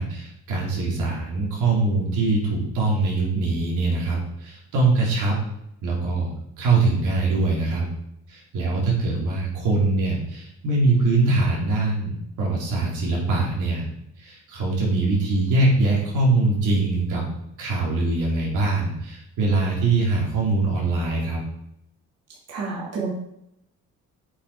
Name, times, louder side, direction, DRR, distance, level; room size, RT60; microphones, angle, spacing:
voice 1, 0.0-5.4 5.8-6.3 6.6-7.9 8.3-13.9 14.2-17.3 17.6-21.4, right 3 dB, 85° right, -4 dB, 3.6 m, -23 dB
voice 2, 22.5-23.1, right 4 dB, 55° right, -5 dB, 3.0 m, -29 dB
8.4 x 5.7 x 5.0 m, 0.79 s
cardioid pair, 90°, 30 cm